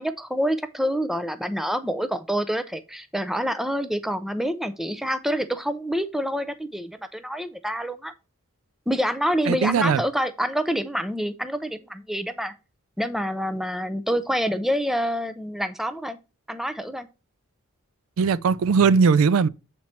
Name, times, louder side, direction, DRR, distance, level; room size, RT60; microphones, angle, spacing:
voice 1, 0.0-8.1 8.9-12.5 13.0-16.2 16.5-17.1, equal, ahead, 0.5 m, -27 dB
voice 2, 9.5-10.0 18.2-19.5, right 5 dB, 75° right, 0.4 m, -19 dB
7.5 x 4.4 x 4.2 m
head